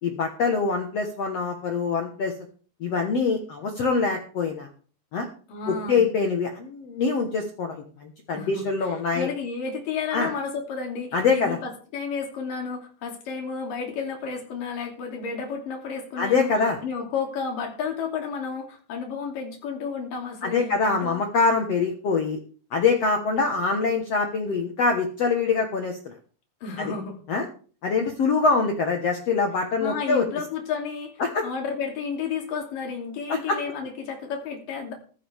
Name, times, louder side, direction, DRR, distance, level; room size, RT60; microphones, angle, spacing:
voice 1, 0.0-2.3 2.8-4.7 5.1-5.3 5.7-9.3 10.1-10.3 11.1-11.6 16.2-16.8 20.4-22.4 22.7-26.1 26.8-26.9 27.3-27.5 27.8-30.3 31.2-31.4 33.3-33.6, left 4 dB, 75° left, 3 dB, 1.4 m, -24 dB
voice 2, 5.5-6.1 8.3-16.5 16.8-21.2 26.6-27.2 29.8-34.9, left 5 dB, 55° left, 1 dB, 4.2 m, -32 dB
15.0 x 12.5 x 3.5 m, 0.41 s
omnidirectional pair, 5.1 m